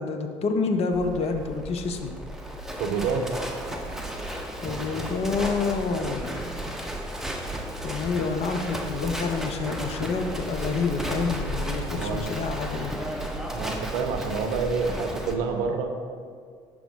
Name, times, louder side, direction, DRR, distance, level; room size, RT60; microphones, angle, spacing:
voice 1, 0.0-2.1 4.6-6.4 7.8-12.9, left 4 dB, 45° left, 5 dB, 0.6 m, -28 dB
Livestock farm animals working animals, 0.9-15.3, right 1 dB, 5° right, 0.8 m, -33 dB
voice 2, 2.8-3.3 4.2-4.3 11.9-12.2 13.5-15.9, right 5 dB, 60° right, 5 dB, 0.6 m, -28 dB
6.0 x 3.5 x 5.1 m, 2.1 s
figure-of-eight pair, 55°, 15 cm